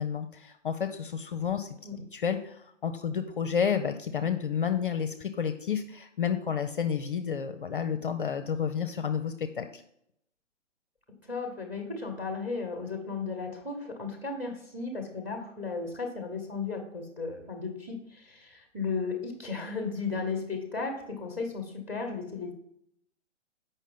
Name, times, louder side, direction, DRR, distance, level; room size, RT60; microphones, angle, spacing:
voice 1, 0.0-1.7 2.1-9.8, left 7 dB, 45° left, 8 dB, 0.6 m, -30 dB
voice 2, 11.2-22.5, left 4 dB, 5° right, 4 dB, 1.0 m, -35 dB
7.3 x 5.4 x 3.6 m, 0.75 s
figure-of-eight pair, 135°, 37 cm